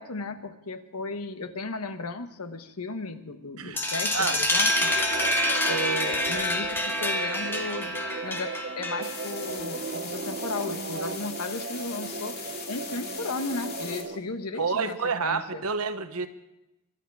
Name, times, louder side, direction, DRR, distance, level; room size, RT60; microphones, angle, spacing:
voice 1, 0.0-4.9 5.7-12.4 12.7-15.6, left 3 dB, 90° left, 1.2 m, -35 dB
sound 1, 3.8-9.3, left 1 dB, 10° left, 1.2 m, -27 dB
sound 2, 4.7-14.2, right 4 dB, 45° right, 0.7 m, -36 dB
sound 3, 9.0-14.0, left 5 dB, 45° left, 2.5 m, -40 dB
voice 2, 14.6-16.3, right 5 dB, 80° right, 1.1 m, -28 dB
23.5 x 11.0 x 4.8 m
head